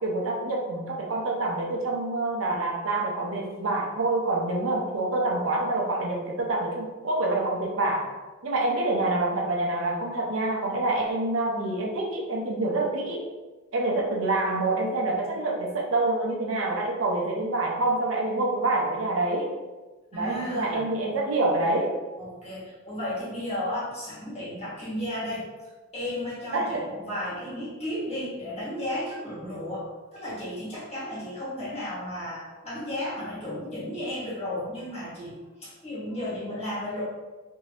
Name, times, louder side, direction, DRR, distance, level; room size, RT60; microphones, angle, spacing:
voice 1, 0.0-8.0 8.4-13.2 13.7-19.5 20.1-21.9 26.5-26.8, right 2 dB, 75° right, -1 dB, 0.6 m, -26 dB
voice 2, 20.1-20.8 22.2-25.5 25.9-37.0, left 1 dB, 35° left, -9 dB, 1.4 m, -34 dB
2.8 x 2.7 x 3.1 m, 1.2 s
head